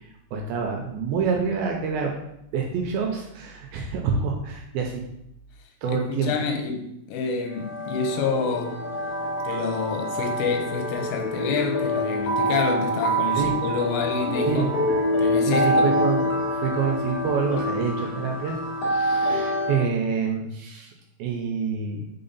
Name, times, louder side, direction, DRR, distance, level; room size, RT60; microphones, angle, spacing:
voice 1, 0.0-2.2 2.5-5.0 5.8-6.3 13.3-13.5 14.5-14.7 15.5-18.6 18.8-20.9 21.2-22.0, right 6 dB, 80° right, 2 dB, 2.2 m, -27 dB
voice 2, 5.9-8.8 9.4-14.7 15.2-16.0, left 5 dB, 90° left, 3 dB, 3.1 m, -28 dB
sound 1, 7.5-19.9, equal, 65° left, 3.2 m, -26 dB
6.7 x 3.7 x 4.0 m, 0.78 s
omnidirectional pair, 4.8 m